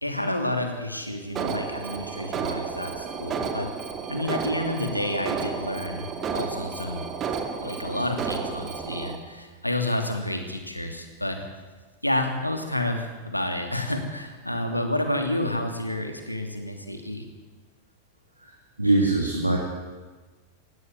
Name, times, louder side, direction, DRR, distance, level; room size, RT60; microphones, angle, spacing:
voice 1, 0.0-3.7 4.1-6.1 6.3-7.0 7.6-11.5 12.0-17.2, left 1 dB, 85° left, 5 dB, 2.8 m, -29 dB
Alarm, 1.4-9.2, right 6 dB, 30° right, 2.6 m, -32 dB
voice 2, 18.8-19.6, right 2 dB, 85° right, 0 dB, 2.9 m, -22 dB
18.0 x 16.5 x 9.5 m, 1.3 s
figure-of-eight pair, 90°, 0 cm